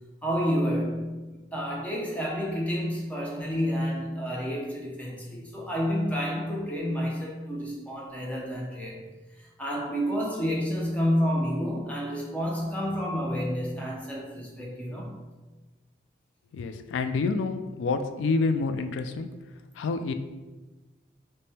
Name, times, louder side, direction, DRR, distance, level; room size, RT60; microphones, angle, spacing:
voice 1, 0.2-9.0 9.4-15.2, equal, 10° left, -3 dB, 0.5 m, -29 dB
voice 2, 16.5-19.3 19.8-20.1, left 4 dB, 85° left, 8 dB, 0.3 m, -28 dB
3.4 x 2.2 x 4.1 m, 1.2 s
head